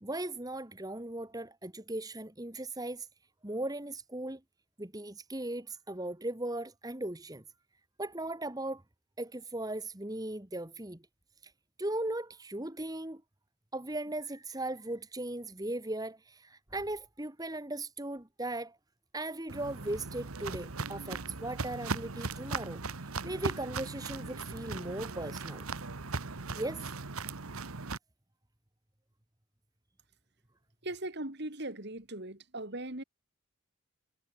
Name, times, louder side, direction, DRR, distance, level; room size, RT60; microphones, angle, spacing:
voice 1, 0.0-3.1 3.4-4.4 4.8-7.4 8.0-8.8 9.2-11.0 11.4-11.5 11.8-13.2 13.7-18.8 19.1-25.6 26.5-26.9, right 1 dB, 15° right, 1.5 m, -38 dB
Walk footsteps, 19.5-28.0, right 4 dB, 90° right, 1.4 m, -38 dB
voice 2, 30.8-33.0, right 1 dB, 50° right, 3.3 m, -39 dB
head